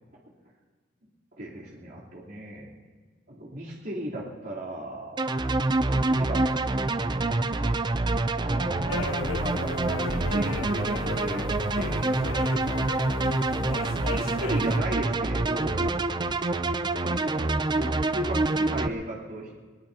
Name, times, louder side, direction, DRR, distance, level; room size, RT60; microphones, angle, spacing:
voice 1, 1.4-2.7 3.3-5.2 5.9-7.1 8.4-12.3 13.5-15.9 17.0-19.5, right 1 dB, 55° right, -6 dB, 3.5 m, -36 dB
sound 1, 5.2-18.9, right 2 dB, 25° right, 0.4 m, -26 dB
sound 2, 8.9-14.8, left 6 dB, 85° left, 0.4 m, -36 dB
21.5 x 21.0 x 2.9 m, 1.5 s
head